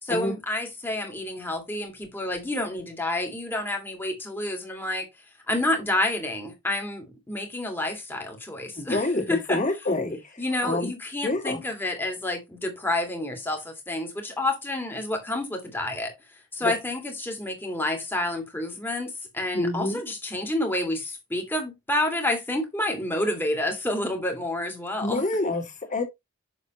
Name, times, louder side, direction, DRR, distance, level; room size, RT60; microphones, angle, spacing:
voice 1, 0.0-5.1 5.5-9.6 10.4-16.1 16.5-25.2, left 1 dB, 10° left, 2.0 m, -29 dB
voice 2, 8.8-10.9 11.2-11.6 16.6-16.7 19.5-20.0 25.0-26.0, left 2 dB, 35° left, 2.4 m, -27 dB
6.8 x 6.6 x 2.9 m
head